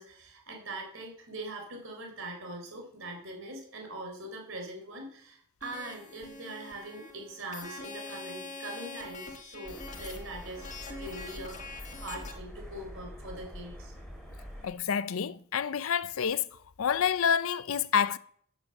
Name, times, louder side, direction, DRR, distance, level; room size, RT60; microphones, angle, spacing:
voice 1, 0.0-13.9, right 1 dB, 65° right, 4.0 m, -42 dB
sound 1, 5.6-12.3, left 3 dB, 35° left, 1.7 m, -44 dB
sound 2, 9.6-14.7, equal, 5° left, 3.2 m, -45 dB
voice 2, 14.6-16.5 16.8-18.2, left 7 dB, 75° left, 0.5 m, -28 dB
16.0 x 7.7 x 7.1 m
head